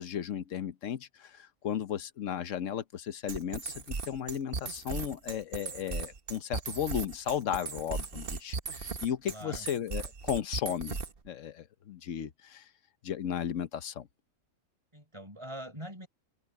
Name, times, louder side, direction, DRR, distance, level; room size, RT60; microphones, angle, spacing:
voice 1, 0.0-11.0 11.2-12.7 13.0-14.1, left 9 dB, 65° left, 1.2 m, -35 dB
sound 1, 3.3-11.3, right 4 dB, 45° right, 1.3 m, -37 dB
voice 2, 9.2-9.7 14.9-16.1, equal, 20° right, 4.2 m, -43 dB
omnidirectional pair, 1.5 m